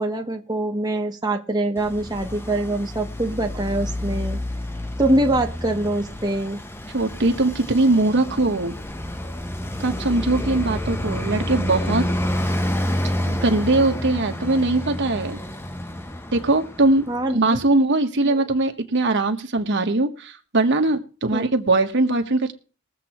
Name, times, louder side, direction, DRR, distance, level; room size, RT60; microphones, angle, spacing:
voice 1, 0.0-4.4 5.0-6.6 17.1-17.6 18.2-18.4 21.3-21.5, right 1 dB, 20° right, 2 dB, 1.0 m, -24 dB
Traffic noise roadway noise, 1.8-17.2, left 1 dB, 10° left, 0.7 m, -29 dB
voice 2, 6.9-8.8 9.8-12.0 13.3-15.4 16.3-17.0 17.3-22.5, right 2 dB, 55° right, 6 dB, 1.2 m, -21 dB
21.5 x 7.6 x 3.0 m, 0.39 s
head